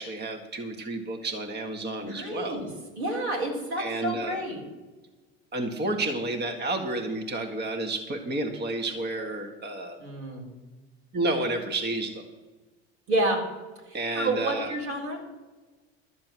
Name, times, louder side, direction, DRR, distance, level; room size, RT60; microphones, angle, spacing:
voice 1, 0.0-2.6 3.8-4.4 5.5-10.0 11.1-12.2 13.9-14.7, right 2 dB, 30° right, 4 dB, 1.8 m, -31 dB
voice 2, 2.0-2.7 3.0-4.6 10.0-10.4 13.1-13.4 13.8-15.2, right 1 dB, 85° right, 0 dB, 4.3 m, -29 dB
13.0 x 7.5 x 7.6 m, 1.3 s
hypercardioid pair, 80°, 32 cm